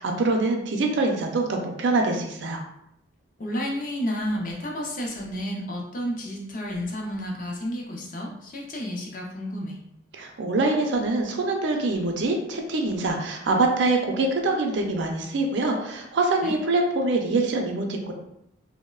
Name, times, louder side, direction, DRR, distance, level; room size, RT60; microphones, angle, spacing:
voice 1, 0.0-2.6 10.1-18.1, right 2 dB, 65° right, 2 dB, 0.4 m, -24 dB
voice 2, 3.4-9.8 16.4-16.5, equal, 40° left, -1 dB, 0.5 m, -31 dB
3.0 x 2.0 x 2.2 m, 0.78 s
head